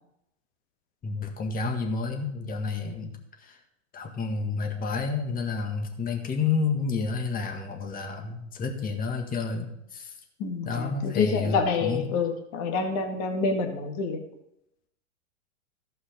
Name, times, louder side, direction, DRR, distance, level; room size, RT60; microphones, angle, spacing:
voice 1, 1.0-3.2 3.4-3.6 3.9-10.1 10.6-12.1, left 4 dB, 20° left, 4 dB, 1.7 m, -30 dB
voice 2, 10.4-14.2, left 4 dB, 40° left, 4 dB, 1.8 m, -27 dB
14.5 x 5.6 x 5.2 m, 0.79 s
hypercardioid pair, 120°, 39 cm